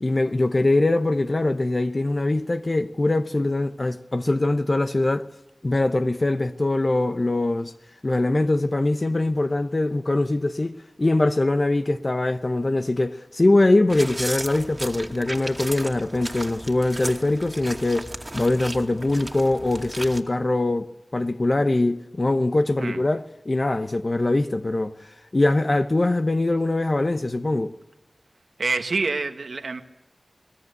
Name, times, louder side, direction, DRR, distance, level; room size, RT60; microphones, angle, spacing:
voice 1, 0.0-5.3 5.6-7.7 8.0-27.7, left 2 dB, 40° left, 0.9 m, -22 dB
sound 1, 13.9-20.2, right 1 dB, 20° right, 2.4 m, -35 dB
voice 2, 28.6-29.8, right 3 dB, 85° right, 1.5 m, -26 dB
26.0 x 20.0 x 8.2 m
wide cardioid pair, 60°, 0 cm